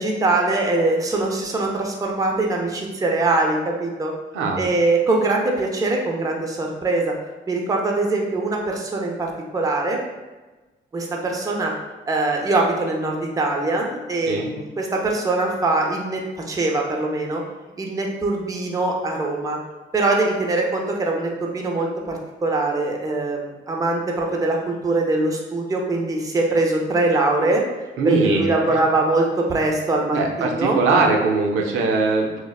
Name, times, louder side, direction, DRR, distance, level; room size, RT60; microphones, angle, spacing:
voice 1, 0.0-4.1 4.6-7.1 7.5-10.0 10.9-11.7 12.1-16.2 16.5-17.4 17.8-19.6 19.9-27.6 28.0-30.8, right 2 dB, 15° right, 0 dB, 0.4 m, -22 dB
voice 2, 28.0-28.8 30.1-32.4, right 3 dB, 85° right, 1 dB, 0.5 m, -21 dB
3.1 x 2.0 x 2.3 m, 1.2 s
cardioid pair, 90°, 20 cm